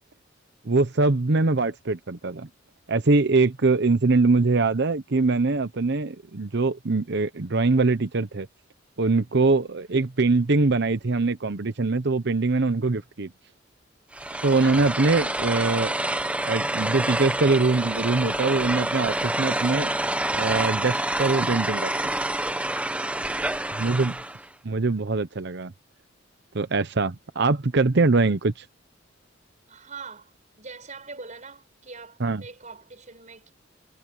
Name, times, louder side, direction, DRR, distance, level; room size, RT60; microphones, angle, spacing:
voice 1, 0.7-2.5 2.9-8.5 9.0-13.3 14.4-15.9 16.4-19.9 20.3-21.9 23.8-24.2 24.6-25.7 26.5-28.6 32.2-32.4, right 3 dB, 60° right, 0.9 m, -23 dB
sound 1, 14.1-24.4, right 1 dB, 5° right, 0.8 m, -27 dB
voice 2, 29.7-33.5, right 4 dB, 40° right, 5.9 m, -44 dB
head